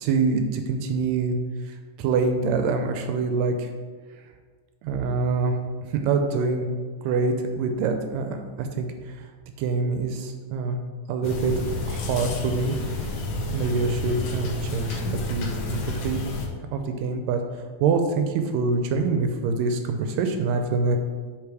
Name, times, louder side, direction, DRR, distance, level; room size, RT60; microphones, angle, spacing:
voice 1, 0.0-1.4 1.6-3.7 4.8-5.6 5.8-6.7 7.0-9.3 9.6-10.8 11.1-11.5 11.9-13.2 13.5-16.2 16.7-17.4 17.8-21.0, right 4 dB, 80° right, 6 dB, 1.6 m, -25 dB
sound 1, 11.2-16.5, left 2 dB, 70° left, 1.9 m, -30 dB
8.3 x 3.4 x 4.7 m, 1.5 s
omnidirectional pair, 3.6 m